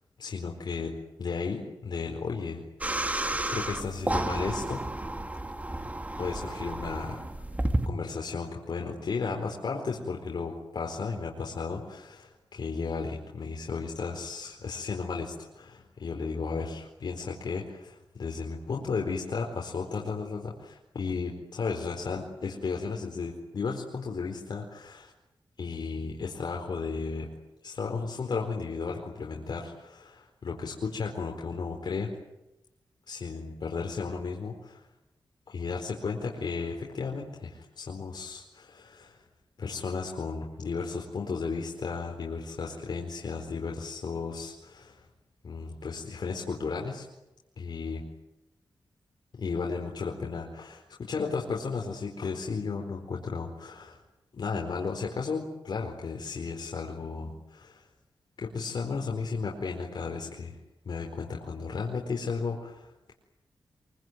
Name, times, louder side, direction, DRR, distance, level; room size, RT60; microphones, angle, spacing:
voice 1, 0.2-0.9 1.2-4.8 6.2-7.5 7.9-25.1 25.6-27.3 27.6-32.1 33.1-34.8 35.5-39.2 39.6-45.1 45.4-47.1 47.6-48.0 49.4-54.0 54.3-57.8 58.4-60.6 60.8-63.1, left 4 dB, 65° left, 0 dB, 4.4 m, -34 dB
sound 1, 2.8-7.9, right 1 dB, 20° right, 2.2 m, -31 dB
25.5 x 24.0 x 9.4 m, 0.92 s
wide cardioid pair, 115°, 8 cm